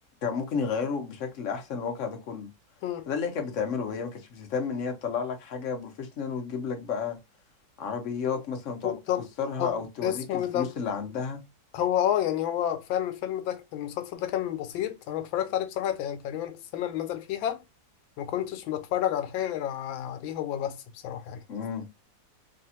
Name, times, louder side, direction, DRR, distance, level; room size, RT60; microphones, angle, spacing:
voice 1, 0.2-2.5 3.1-7.2 7.8-9.0 9.4-11.4 21.5-21.9, left 6 dB, 55° left, 0.9 m, -32 dB
voice 2, 8.8-9.3 9.6-10.7 11.7-17.6 18.2-20.8 21.0-21.4, left 11 dB, 90° left, 1.4 m, -30 dB
3.2 x 2.3 x 2.7 m
omnidirectional pair, 2.1 m